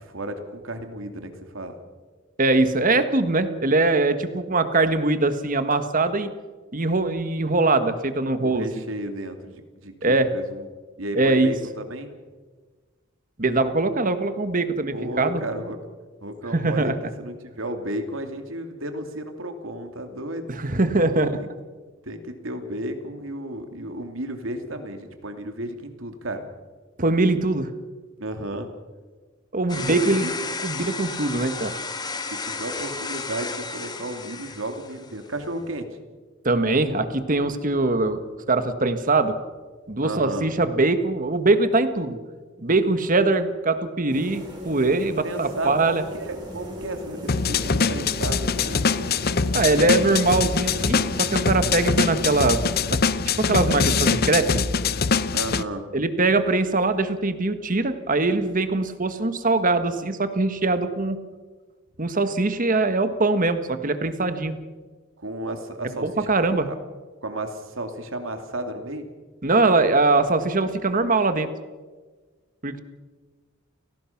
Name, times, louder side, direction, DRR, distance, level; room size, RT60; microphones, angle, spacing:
voice 1, 0.0-1.8 8.4-10.7 11.0-12.1 14.9-15.8 16.2-16.9 17.2-20.5 21.4-21.5 22.0-26.5 28.2-28.7 29.7-29.9 30.2-30.3 32.3-35.9 40.0-40.5 45.2-48.8 55.3-55.8 65.2-66.3 67.2-69.0, right 1 dB, 80° right, 6 dB, 2.7 m, -33 dB
voice 2, 2.4-6.3 6.7-8.7 10.0-10.3 11.1-11.5 13.4-15.4 16.5-16.9 20.5-21.4 27.0-27.7 29.5-30.3 30.6-31.7 36.4-38.2 38.5-39.3 39.9-42.2 42.6-46.0 49.5-52.6 52.9-53.0 53.4-54.5 55.9-61.2 62.0-64.5 66.0-66.7 69.4-71.5 72.6-72.8, right 2 dB, 40° right, 10 dB, 1.5 m, -22 dB
sound 1, 29.7-35.2, left 4 dB, 20° left, 1.5 m, -33 dB
sound 2, 44.1-52.9, equal, 25° right, 6.6 m, -38 dB
sound 3, 47.3-55.6, left 5 dB, 50° left, 0.8 m, -23 dB
29.5 x 18.0 x 5.9 m, 1.4 s
head